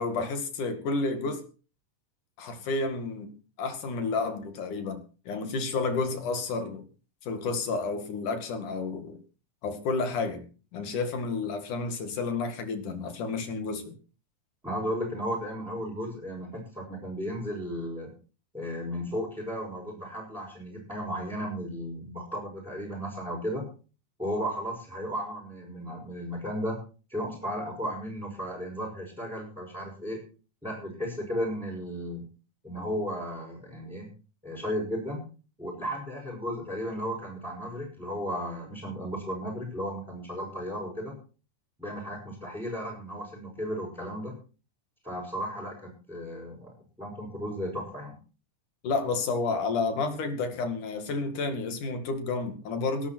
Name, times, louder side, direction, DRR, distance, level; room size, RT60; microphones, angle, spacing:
voice 1, 0.0-1.4 2.4-3.3 3.6-6.8 7.2-9.2 9.6-10.5 10.7-14.0 48.8-53.1, left 3 dB, 65° left, 7 dB, 3.7 m, -30 dB
voice 2, 14.6-18.1 18.5-23.6 24.2-26.8 27.1-30.3 30.6-32.3 32.6-34.1 34.4-35.2 35.6-41.1 41.8-44.3 45.0-48.2, equal, ahead, -4 dB, 6.4 m, -34 dB
19.0 x 12.0 x 4.5 m, 0.37 s
omnidirectional pair, 3.9 m